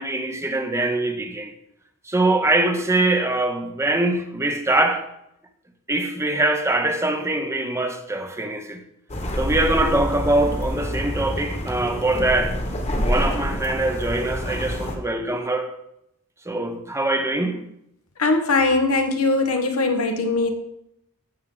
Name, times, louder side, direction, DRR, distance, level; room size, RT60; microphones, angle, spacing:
voice 1, 0.0-1.5 2.1-5.1 5.9-8.8 9.4-12.6 13.0-15.8 16.5-17.6, right 2 dB, 15° right, 0.8 m, -23 dB
sound 1, 9.1-15.0, equal, 30° left, 1.3 m, -27 dB
voice 2, 18.2-20.5, left 3 dB, 90° left, 1.3 m, -20 dB
14.5 x 6.3 x 3.8 m
head